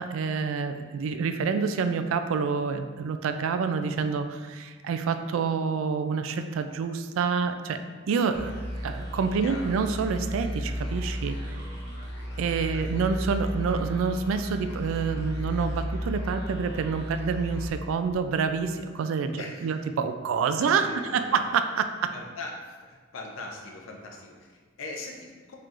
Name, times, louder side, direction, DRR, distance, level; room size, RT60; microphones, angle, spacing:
voice 1, 0.0-7.8 8.1-8.5 8.8-11.6 12.4-20.9 21.1-21.9, right 5 dB, 80° right, 8 dB, 0.3 m, -27 dB
sound 1, 8.3-18.6, equal, 60° left, 0.9 m, -34 dB
voice 2, 9.4-9.8 12.7-13.1 19.4-19.7 20.6-21.4 22.1-25.5, left 2 dB, 75° left, 0 dB, 0.6 m, -41 dB
4.3 x 3.8 x 2.4 m, 1.5 s
head